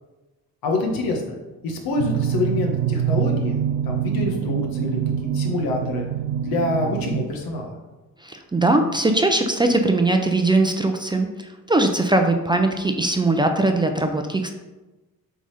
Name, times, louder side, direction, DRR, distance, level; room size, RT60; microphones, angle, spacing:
voice 1, 0.6-1.4 1.6-6.1 6.4-7.8, left 2 dB, 80° left, 2 dB, 1.7 m, -26 dB
sound 1, 2.0-7.3, right 9 dB, 85° right, 0.5 m, -25 dB
voice 2, 8.2-11.3 11.7-14.5, right 2 dB, 15° right, 5 dB, 0.5 m, -20 dB
7.5 x 4.1 x 5.0 m, 1.1 s
cardioid pair, 120°, 35 cm